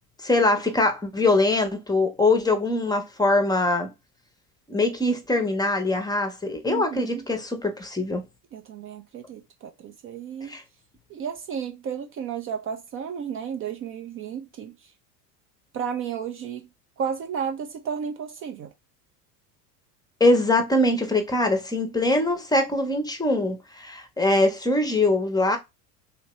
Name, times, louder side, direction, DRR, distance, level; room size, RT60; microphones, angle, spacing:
voice 1, 0.2-3.9 4.7-8.2 10.5-10.6 20.2-25.6, left 2 dB, 10° left, 0.7 m, -22 dB
voice 2, 6.7-7.2 8.5-10.6 11.1-14.9 15.7-16.7 17.0-18.7, right 7 dB, 30° right, 0.4 m, -33 dB
2.8 x 2.8 x 3.0 m
hypercardioid pair, 85°, 46 cm